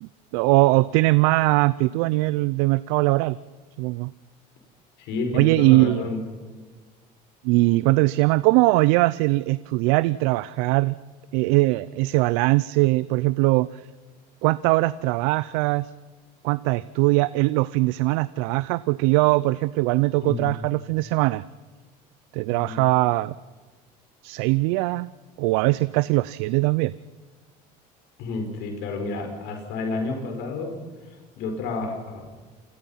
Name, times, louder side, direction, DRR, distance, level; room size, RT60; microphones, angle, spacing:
voice 1, 0.0-3.4 3.8-4.1 5.3-6.0 7.4-10.9 11.3-13.7 14.4-15.9 16.4-21.4 22.3-23.3 24.2-25.1 25.4-26.9, right 20 dB, 85° right, 18 dB, 0.6 m, -21 dB
voice 2, 5.0-6.2 20.2-20.5 22.5-22.8 28.2-30.7 31.0-32.3, left 3 dB, 70° left, 4 dB, 5.4 m, -30 dB
28.0 x 21.0 x 5.7 m, 1.4 s
supercardioid pair, 105°, 18 cm